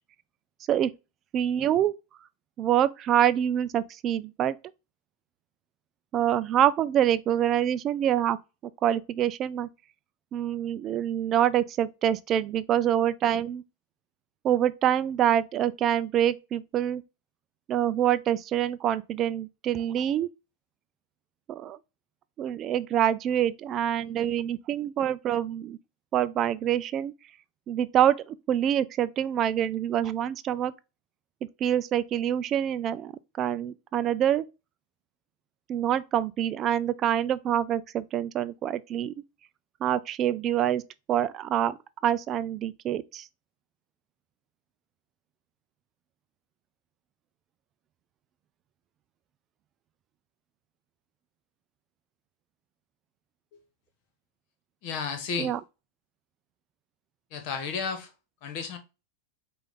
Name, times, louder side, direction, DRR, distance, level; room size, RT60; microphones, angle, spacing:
voice 1, 1.3-1.9 2.6-4.6 6.1-8.4 8.8-9.7 10.3-13.6 14.4-17.0 17.7-20.3 21.5-21.8 22.4-25.8 26.1-27.1 27.7-30.7 31.6-33.1 33.4-34.4 35.7-39.1 39.8-40.8 41.1-41.8 42.0-43.3 55.4-55.6, right 10 dB, 35° right, 0.3 m, -26 dB
voice 2, 54.8-55.5 57.3-58.1 58.4-58.8, left 5 dB, 55° left, 1.3 m, -32 dB
5.0 x 2.5 x 3.7 m
hypercardioid pair, 110°, 0 cm